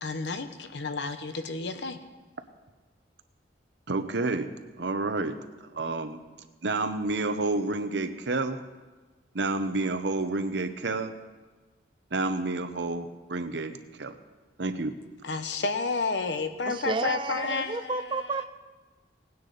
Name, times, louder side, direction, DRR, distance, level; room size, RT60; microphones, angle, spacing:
voice 1, 0.0-2.0 15.2-18.2, left 3 dB, 70° left, 9 dB, 0.9 m, -31 dB
voice 2, 3.9-4.5 4.8-5.4 5.7-6.2 6.6-8.6 9.3-11.1 12.1-14.1 14.6-14.9, right 2 dB, 70° right, 9 dB, 0.8 m, -29 dB
voice 3, 16.6-18.4, right 3 dB, 25° right, 8 dB, 0.4 m, -31 dB
18.5 x 9.5 x 4.0 m, 1.3 s
head